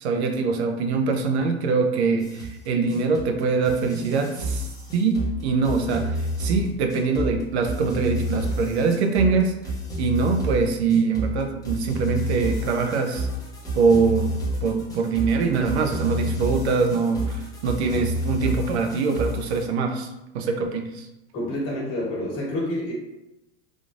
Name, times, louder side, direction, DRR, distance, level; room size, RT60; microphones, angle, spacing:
voice 1, 0.0-9.5 10.0-13.3 13.7-14.3 14.6-20.1 20.3-21.1, right 4 dB, 70° right, 5 dB, 0.6 m, -23 dB
sound 1, 2.2-19.6, right 1 dB, 10° left, 0.7 m, -29 dB
voice 2, 21.3-22.9, left 1 dB, 40° left, -4 dB, 1.4 m, -28 dB
3.6 x 2.4 x 2.5 m, 0.92 s
hypercardioid pair, 105°, 34 cm